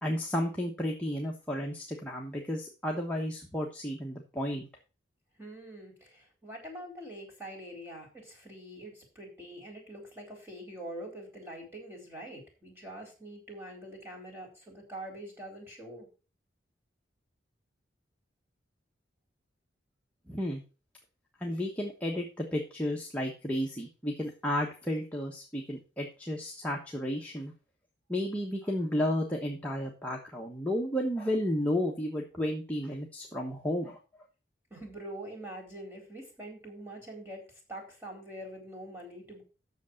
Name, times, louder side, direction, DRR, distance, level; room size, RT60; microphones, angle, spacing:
voice 1, 0.0-4.7 20.3-20.6 21.4-27.5 28.1-34.0, equal, 5° left, -2 dB, 1.2 m, -32 dB
voice 2, 5.4-16.1 34.7-39.4, right 1 dB, 15° right, 0 dB, 4.3 m, -44 dB
8.3 x 6.7 x 6.4 m, 0.34 s
head